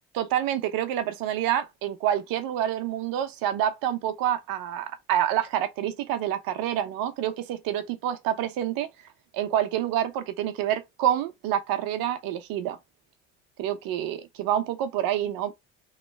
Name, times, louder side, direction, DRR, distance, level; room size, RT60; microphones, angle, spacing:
voice 1, 0.1-8.9 9.3-12.8 13.6-15.5, right 11 dB, 60° right, 0.9 m, -27 dB
3.2 x 3.0 x 4.5 m
hypercardioid pair, 65°, 38 cm